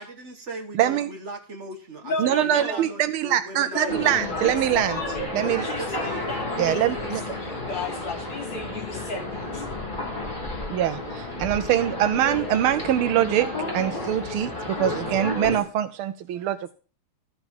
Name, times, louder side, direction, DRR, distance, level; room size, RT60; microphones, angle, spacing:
voice 1, 0.0-4.4 5.4-6.4, right 2 dB, 35° right, 1.4 m, -38 dB
voice 2, 0.7-1.1 2.2-5.0 5.3-5.6 6.6-7.2 10.7-13.5 13.7-16.7, right 11 dB, 75° right, 1.5 m, -23 dB
voice 3, 2.0-2.8 3.7-4.1 4.4-5.2 5.6-9.7 13.9-14.1 16.3-16.5, left 2 dB, 55° left, 3.9 m, -34 dB
sound 1, 3.9-15.6, left 2 dB, 20° left, 3.3 m, -31 dB
13.5 x 4.8 x 7.1 m
omnidirectional pair, 2.4 m